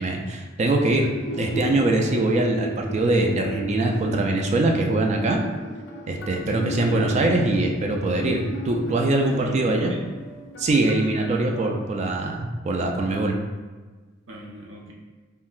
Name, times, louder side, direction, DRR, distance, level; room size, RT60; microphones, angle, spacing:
voice 1, 0.0-5.4 6.1-9.9 10.6-13.4, right 2 dB, 35° right, 1 dB, 0.3 m, -23 dB
sound 1, 0.9-11.7, equal, 60° left, 0.4 m, -35 dB
voice 2, 9.2-10.0 14.3-14.9, right 1 dB, 85° right, -2 dB, 0.5 m, -38 dB
3.7 x 2.1 x 2.4 m, 1.3 s
head